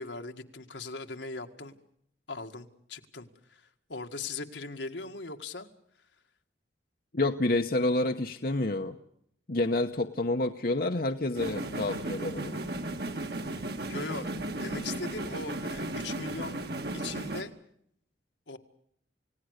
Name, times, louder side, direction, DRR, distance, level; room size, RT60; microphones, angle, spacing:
voice 1, 0.0-1.8 2.3-5.7 13.9-16.6 16.9-17.5 18.5-18.6, left 3 dB, 75° left, 5 dB, 2.0 m, -40 dB
voice 2, 7.1-8.9 9.5-12.6, left 2 dB, 50° left, 6 dB, 1.1 m, -28 dB
sound 1, 11.3-17.4, right 2 dB, 60° right, 2.1 m, -35 dB
29.0 x 17.5 x 6.6 m, 0.70 s
head